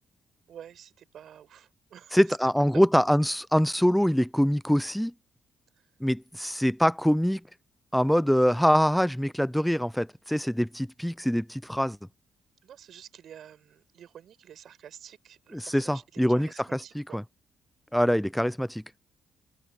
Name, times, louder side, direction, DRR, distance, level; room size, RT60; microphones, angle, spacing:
voice 1, 0.5-2.2 2.7-2.8 5.8-5.9 12.6-17.2, right 9 dB, 65° right, 5.6 m, -49 dB
voice 2, 2.1-5.1 6.0-7.4 7.9-12.0 15.5-17.2 17.9-18.8, equal, ahead, 0.5 m, -24 dB
cardioid pair, 90°, 0 cm